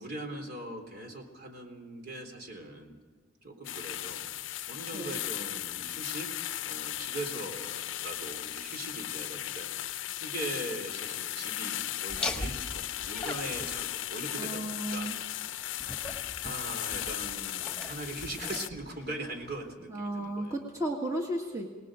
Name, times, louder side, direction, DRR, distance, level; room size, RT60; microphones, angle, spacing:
voice 1, 0.0-3.0 3.4-4.2 4.7-6.3 6.7-9.7 10.2-15.1 15.6-15.7 16.4-20.5, right 1 dB, 55° right, 4 dB, 3.8 m, -41 dB
sound 1, 3.6-18.7, left 13 dB, 80° left, 0.6 m, -36 dB
Laughter, 12.1-19.7, left 2 dB, 5° left, 2.1 m, -42 dB
voice 2, 14.4-15.2 19.9-21.8, right 1 dB, 15° right, 1 dB, 1.8 m, -34 dB
27.5 x 19.5 x 5.1 m, 1.5 s
head